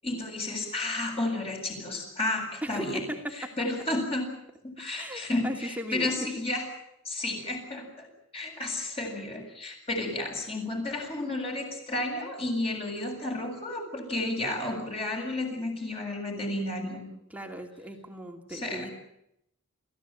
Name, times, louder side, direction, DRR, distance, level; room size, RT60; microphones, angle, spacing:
voice 1, 0.0-3.0 3.4-4.3 4.6-6.6 7.0-8.1 8.3-17.1 18.5-18.9, left 2 dB, 25° left, 1 dB, 7.4 m, -32 dB
voice 2, 2.6-3.5 5.0-6.1 17.3-18.9, right 1 dB, 5° right, 3 dB, 2.5 m, -37 dB
30.0 x 15.5 x 9.2 m, 0.81 s
head